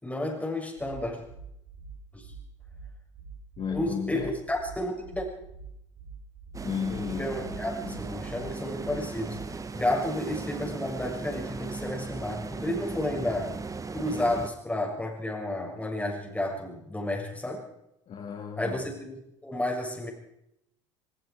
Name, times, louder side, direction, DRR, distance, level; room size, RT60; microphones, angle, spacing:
voice 1, 0.0-1.2 2.1-2.3 3.7-5.3 7.1-9.4 9.7-13.5 13.9-17.7 18.6-20.1, left 1 dB, 10° left, 0 dB, 7.0 m, -31 dB
sound 1, 0.8-9.7, right 5 dB, 60° right, 6.6 m, -45 dB
voice 2, 3.6-4.3 6.6-8.1 18.1-18.8, left 6 dB, 40° left, -1 dB, 4.3 m, -34 dB
sound 2, 6.5-14.5, right 4 dB, 20° right, 1.9 m, -37 dB
23.0 x 23.0 x 5.0 m, 0.79 s
figure-of-eight pair, 65°, 16 cm